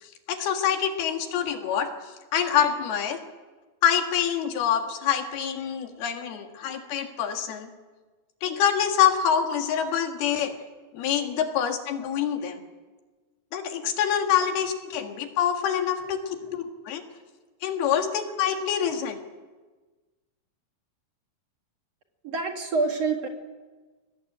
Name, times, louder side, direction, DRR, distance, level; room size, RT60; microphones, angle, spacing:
voice 1, 0.0-1.9 2.3-3.2 3.8-7.7 8.4-10.5 10.9-12.6 13.5-17.0 17.6-19.2, left 9 dB, 85° left, 5 dB, 3.8 m, -26 dB
voice 2, 22.2-23.3, right 4 dB, 50° right, 3 dB, 2.7 m, -28 dB
23.5 x 18.5 x 8.8 m, 1.3 s
omnidirectional pair, 4.3 m